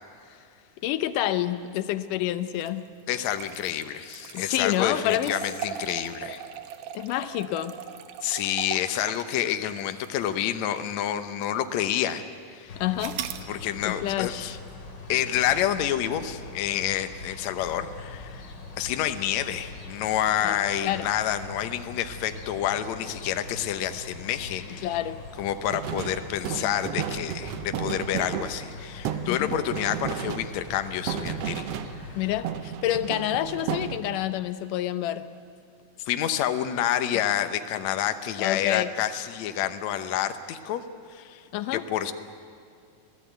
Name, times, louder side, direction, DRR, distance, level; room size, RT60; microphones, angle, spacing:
voice 1, 0.8-2.8 4.3-5.3 6.9-7.7 12.8-13.2 13.8-14.6 20.4-20.6 20.8-21.1 24.7-25.2 25.7-25.8 29.3-29.6 32.2-35.3 38.4-38.9 41.5-41.8, left 13 dB, 90° left, 12 dB, 2.4 m, -28 dB
sound 1, 2.5-10.9 11.4-11.5 13.0-13.5, right 9 dB, 85° right, 2.6 m, -39 dB
voice 2, 3.1-6.4 8.2-12.8 13.5-14.5 15.1-18.5 18.8-24.9 25.4-31.7 36.0-40.8 41.1-41.5 41.7-42.1, left 11 dB, 70° left, 9 dB, 2.2 m, -28 dB
sound 2, 12.7-32.4, left 3 dB, 40° left, 2.5 m, -43 dB
sound 3, 25.7-32.2 32.4-34.3, right 9 dB, 70° right, 1.6 m, -33 dB
26.5 x 17.0 x 9.2 m, 2.3 s
omnidirectional pair, 3.6 m